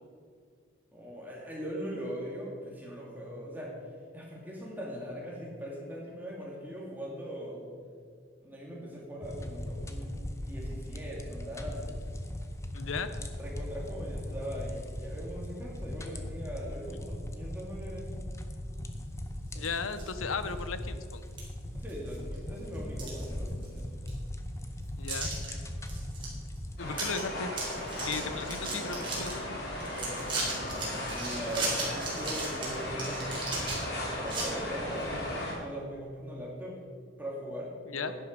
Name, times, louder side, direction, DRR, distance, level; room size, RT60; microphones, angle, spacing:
voice 1, 0.9-3.7 4.1-7.6 8.4-10.1 10.5-12.0 13.4-18.1 19.5-19.7 21.7-23.9 29.9-33.4 34.2-36.8 37.2-38.2, equal, 10° right, -4 dB, 2.8 m, -40 dB
sound 1, 9.2-26.8, left 1 dB, 15° left, 0.7 m, -39 dB
voice 2, 12.7-13.1 19.5-21.2 25.0-25.3 26.8-27.5 28.0-29.6 37.9-38.1, left 5 dB, 85° left, 11 dB, 0.8 m, -36 dB
sound 2, 19.5-20.1 20.6-20.7 21.4-21.5 21.9-22.3 22.7-23.8 24.1-24.2 25.1-25.5 25.9-26.3 26.6-26.7 26.9-27.2 27.5-29.3 29.8-34.4, right 3 dB, 25° right, 3.9 m, -36 dB
sound 3, 26.8-35.5, left 1 dB, 50° left, 3.1 m, -36 dB
11.0 x 11.0 x 5.4 m, 2.1 s
head